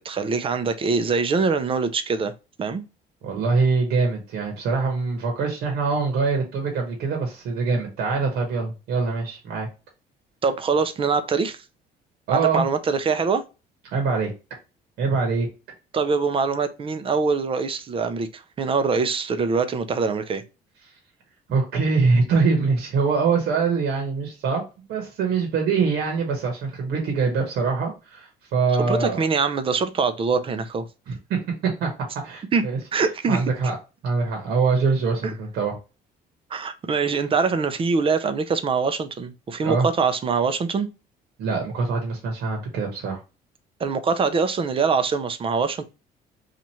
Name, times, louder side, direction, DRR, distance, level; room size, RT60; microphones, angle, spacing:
voice 1, 0.0-2.3 2.6-2.8 10.4-11.6 12.3-13.4 15.9-20.4 28.8-30.9 32.5-32.6 32.9-33.4 36.5-40.9 43.8-45.8, right 5 dB, 30° right, 0.5 m, -23 dB
voice 2, 3.2-9.7 12.3-12.7 13.9-14.3 15.0-15.5 21.5-24.6 24.9-29.2 31.1-31.9 32.2-32.8 33.3-33.7 34.0-35.8 39.6-39.9 41.4-43.2, right 4 dB, 75° right, 1.1 m, -23 dB
3.0 x 2.5 x 4.1 m
cardioid pair, 110°, 17 cm